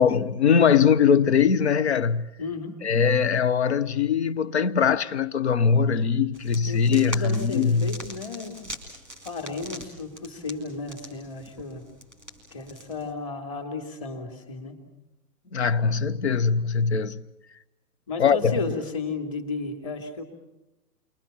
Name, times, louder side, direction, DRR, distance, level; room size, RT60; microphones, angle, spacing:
voice 1, 0.0-2.3 2.8-8.0 15.5-17.2 18.2-18.5, left 6 dB, 45° left, 1.1 m, -21 dB
voice 2, 2.4-2.8 6.6-8.6 9.2-11.8 12.5-14.8 18.1-20.2, left 3 dB, 20° left, 2.8 m, -33 dB
sound 1, 6.3-13.1, right 1 dB, ahead, 1.8 m, -43 dB
30.0 x 23.0 x 5.7 m
hypercardioid pair, 180°, 47 cm